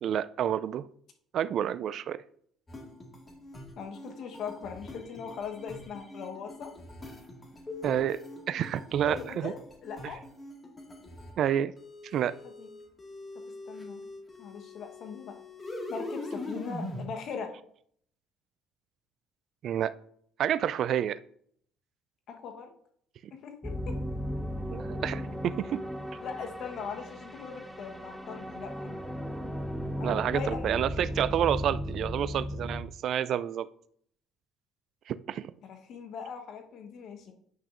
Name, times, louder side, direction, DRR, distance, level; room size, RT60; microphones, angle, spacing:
voice 1, 0.0-0.8 1.3-2.2 7.8-8.2 8.5-9.5 11.4-11.7 12.1-12.3 19.6-19.9 20.4-21.2 24.7-25.8 30.0-33.7 35.1-35.5, right 10 dB, 60° right, 15 dB, 0.3 m, -29 dB
sound 1, 2.7-11.4 11.8-17.1, left 2 dB, 30° left, 1.8 m, -43 dB
voice 2, 3.7-6.7 9.0-9.5 9.8-10.2 12.4-12.7 13.3-14.1 14.4-15.4 15.9-17.5 22.3-22.7 23.3-24.0 26.2-28.9 30.0-30.7 31.4-31.5 35.6-37.3, left 6 dB, 60° left, 4 dB, 1.1 m, -40 dB
sound 2, 23.6-32.8, equal, ahead, 0.9 m, -36 dB
8.9 x 6.0 x 2.5 m, 0.64 s
hypercardioid pair, 60°, 0 cm